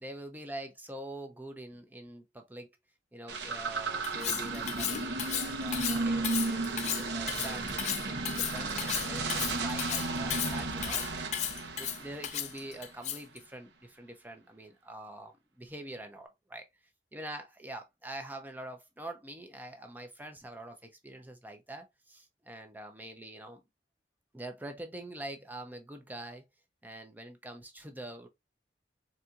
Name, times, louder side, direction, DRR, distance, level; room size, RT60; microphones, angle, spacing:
voice 1, 0.0-2.7 3.1-7.7 8.0-11.0 11.7-16.7 17.1-23.6 24.3-26.4 26.8-28.3, right 1 dB, 10° right, 0.6 m, -45 dB
sound 1, 3.3-12.8, right 3 dB, 80° right, 0.9 m, -34 dB
Cutlery silverware, 4.0-13.4, left 11 dB, 40° left, 0.3 m, -35 dB
sound 2, 4.4-11.3, right 1 dB, 50° right, 1.0 m, -50 dB
4.2 x 2.6 x 2.3 m
head